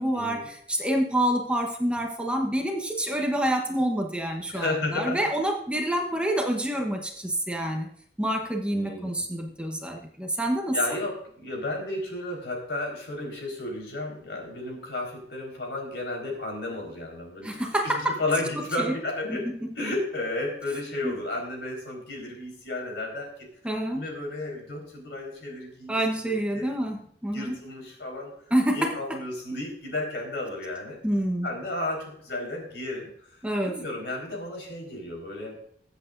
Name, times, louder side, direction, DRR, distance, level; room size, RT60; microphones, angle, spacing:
voice 1, 0.0-7.9 8.2-10.8 17.4-18.2 18.5-18.9 19.3-19.9 21.0-21.1 23.6-24.0 25.9-27.5 28.5-29.2 31.0-31.5 33.4-33.8, right 1 dB, 5° right, 2 dB, 1.1 m, -27 dB
voice 2, 4.5-5.3 8.7-9.1 10.7-17.6 18.0-19.5 19.7-23.5 23.9-26.0 26.2-26.9 27.3-28.3 28.7-31.0 31.4-35.6, left 2 dB, 70° left, 0 dB, 4.6 m, -33 dB
22.0 x 8.1 x 2.6 m, 0.65 s
head